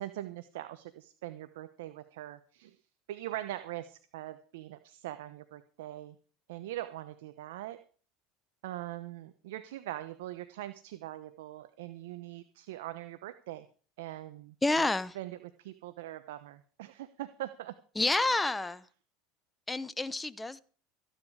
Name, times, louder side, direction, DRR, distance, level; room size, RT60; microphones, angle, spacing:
voice 1, 0.0-2.8 3.1-6.1 6.5-7.8 8.6-13.6 14.0-14.9 15.1-17.7, right 14 dB, 80° right, 0.9 m, -42 dB
voice 2, 14.6-15.2 17.9-18.8 19.7-20.6, left 2 dB, 10° left, 1.0 m, -29 dB
15.0 x 10.0 x 4.9 m
hypercardioid pair, 90°, 0 cm